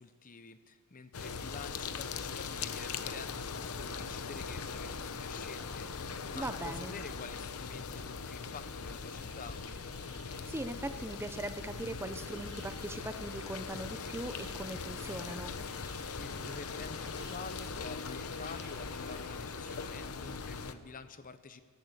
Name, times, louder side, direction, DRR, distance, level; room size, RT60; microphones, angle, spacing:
voice 1, 0.0-9.7 16.1-21.6, left 4 dB, 40° left, 12 dB, 0.8 m, -48 dB
sound 1, 1.1-20.7, left 5 dB, 85° left, 0.8 m, -40 dB
voice 2, 6.3-6.9 10.3-15.6, right 1 dB, 10° right, 10 dB, 0.6 m, -40 dB
sound 2, 9.1-20.1, right 2 dB, 45° right, 3.9 m, -57 dB
13.5 x 11.5 x 8.2 m, 1.5 s
head